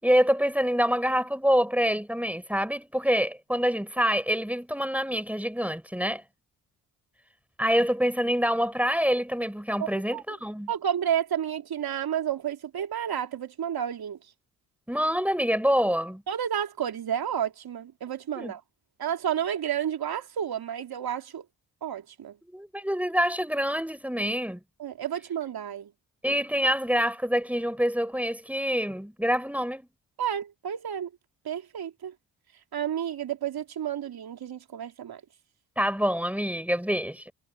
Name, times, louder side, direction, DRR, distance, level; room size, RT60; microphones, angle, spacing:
voice 1, 0.0-6.2 7.6-10.7 14.9-16.2 18.4-18.5 22.5-24.6 26.2-29.9 35.8-37.3, equal, 5° right, 6.5 m, -26 dB
voice 2, 9.8-10.2 10.7-14.2 16.3-18.6 19.0-21.4 21.8-22.4 24.8-25.9 30.2-31.1 31.4-32.1 32.7-35.2, right 9 dB, 55° right, 3.2 m, -31 dB
hypercardioid pair, 45°, 44 cm